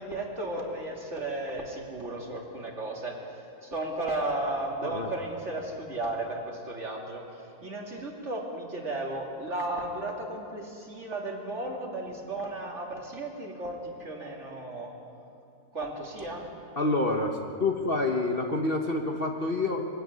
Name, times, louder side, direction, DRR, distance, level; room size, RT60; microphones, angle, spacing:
voice 1, 0.0-3.1 3.6-14.9 15.7-16.4, right 2 dB, 45° right, 0 dB, 2.9 m, -34 dB
voice 2, 16.8-19.9, left 2 dB, 40° left, 3 dB, 1.2 m, -28 dB
23.5 x 12.5 x 9.5 m, 2.7 s
omnidirectional pair, 1.7 m